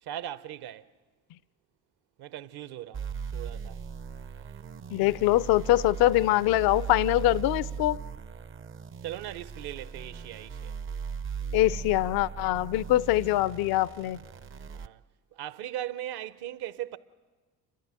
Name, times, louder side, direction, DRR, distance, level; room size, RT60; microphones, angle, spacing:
voice 1, 0.0-0.9 2.2-3.8 5.6-6.5 9.0-10.8 14.7-15.0 15.3-17.0, right 12 dB, 55° right, 1.0 m, -39 dB
sound 1, 2.9-14.9, right 6 dB, 25° right, 0.6 m, -38 dB
voice 2, 4.9-8.0 11.5-14.2, left 16 dB, 50° left, 0.6 m, -24 dB
29.0 x 13.0 x 7.5 m
hypercardioid pair, 55°, 46 cm